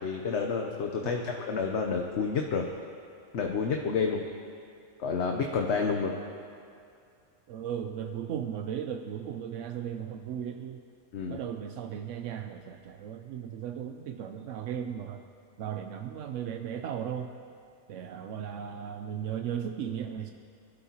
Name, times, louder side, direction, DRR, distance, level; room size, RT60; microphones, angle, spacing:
voice 1, 0.0-2.7 3.3-4.3 5.0-6.2 11.1-11.4, left 5 dB, 65° left, 2 dB, 1.1 m, -29 dB
voice 2, 1.0-1.4 7.5-10.8 11.3-15.2 15.6-17.3 17.9-20.3, right 9 dB, 85° right, 6 dB, 0.9 m, -36 dB
24.0 x 12.0 x 2.9 m, 2.4 s
omnidirectional pair, 1.3 m